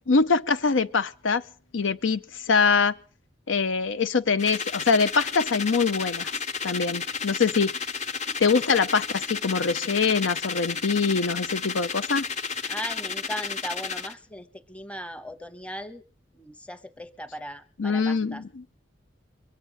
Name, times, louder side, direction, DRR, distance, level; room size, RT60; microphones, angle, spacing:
voice 1, 0.1-1.4 1.7-2.9 3.5-6.3 6.6-7.7 8.4-12.3 17.8-18.6, left 4 dB, 85° left, 0.7 m, -23 dB
sound 1, 4.4-14.1, left 5 dB, 35° left, 1.0 m, -32 dB
voice 2, 12.7-16.0 16.3-18.4, equal, 5° left, 0.8 m, -38 dB
22.5 x 8.4 x 7.3 m
head